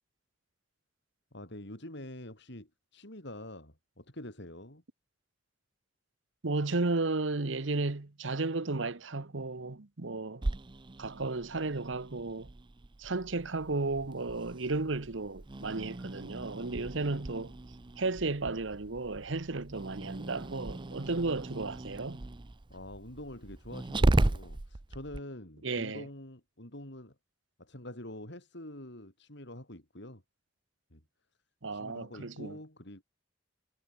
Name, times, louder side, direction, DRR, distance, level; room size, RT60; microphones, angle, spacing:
voice 1, 1.3-4.8 22.7-27.1 27.6-30.2 30.9-31.0 31.7-33.0, left 1 dB, 65° left, 6.8 m, -46 dB
voice 2, 6.4-10.4 11.0-12.5 13.0-17.5 18.0-22.2 25.6-26.0 31.6-32.6, right 3 dB, 75° right, 1.2 m, -34 dB
Growling, 10.4-25.2, right 2 dB, 25° right, 0.6 m, -36 dB
head